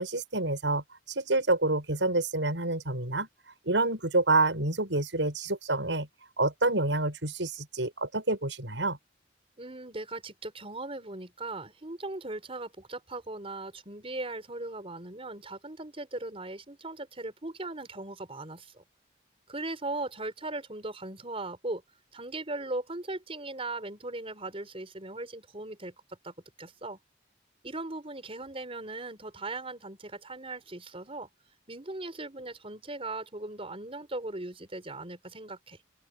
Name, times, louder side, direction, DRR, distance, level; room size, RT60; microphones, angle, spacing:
voice 1, 0.0-3.3 3.7-6.1 6.4-9.0, right 2 dB, 80° right, 6.4 m, -28 dB
voice 2, 9.6-18.8 19.5-21.8 22.1-27.0 27.6-31.3 31.7-35.8, right 2 dB, 30° right, 4.7 m, -38 dB
open air
head